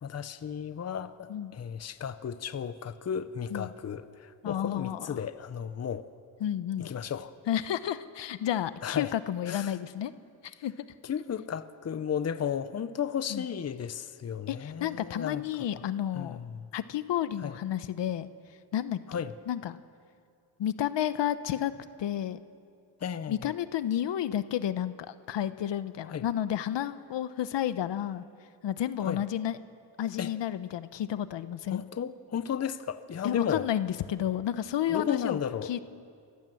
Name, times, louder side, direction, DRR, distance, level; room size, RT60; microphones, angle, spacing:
voice 1, 0.0-6.1 6.8-7.3 8.8-9.1 9.5-9.7 11.0-15.4 15.7-15.8 16.1-16.7 17.4-17.5 19.1-19.3 23.0-23.5 26.1-26.2 29.0-29.2 30.2-30.3 31.7-33.7 34.9-35.7, left 8 dB, 35° left, 12 dB, 0.8 m, -34 dB
voice 2, 4.4-5.2 6.4-6.9 7.5-10.1 10.4-10.7 13.3-13.4 14.5-16.4 16.7-18.3 18.7-19.8 20.6-21.7 22.0-22.4 23.3-28.2 28.6-29.6 30.0-31.8 33.2-35.8, left 11 dB, 65° left, 13 dB, 0.9 m, -31 dB
28.0 x 15.5 x 7.7 m, 2.3 s
cardioid pair, 110°, 46 cm